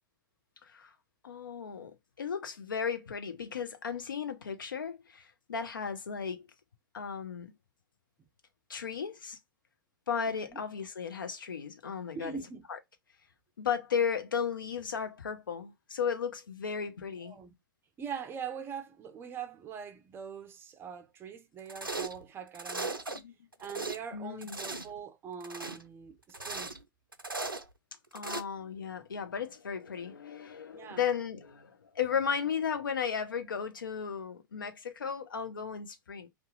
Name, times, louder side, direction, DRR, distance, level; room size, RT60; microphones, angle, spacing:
voice 1, 1.2-6.5 6.9-7.5 8.7-9.4 10.1-12.3 13.6-17.4 23.1-23.3 24.1-24.6 28.1-36.3, left 7 dB, 70° left, 0.6 m, -35 dB
voice 2, 10.3-10.6 12.1-12.7 17.2-17.5 18.0-23.1 23.6-26.7 30.7-31.0, right 7 dB, 20° right, 0.5 m, -42 dB
sound 1, 21.7-22.2 22.5-23.2 23.5-24.0 24.4-24.9 25.4-25.8 26.3-26.8 27.1-27.6 28.2-28.4, right 3 dB, 90° right, 0.4 m, -37 dB
2.7 x 2.4 x 3.6 m
figure-of-eight pair, 95°, 11 cm